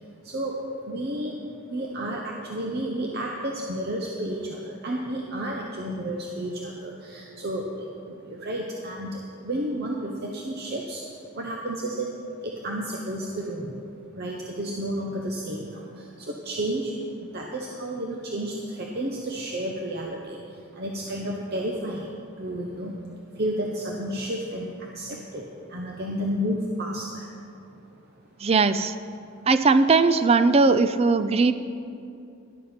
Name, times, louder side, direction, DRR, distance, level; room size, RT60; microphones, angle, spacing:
voice 1, 0.2-0.6 0.8-1.4 1.7-11.0 11.3-12.1 12.4-13.8 14.1-16.9 17.3-20.4 20.7-22.1 22.4-23.0 23.4-25.4 25.7-27.3, right 1 dB, 50° right, -1 dB, 0.9 m, -31 dB
voice 2, 28.4-28.9 29.5-31.5, right 4 dB, 30° right, 11 dB, 0.4 m, -19 dB
13.0 x 11.5 x 4.4 m, 2.6 s
head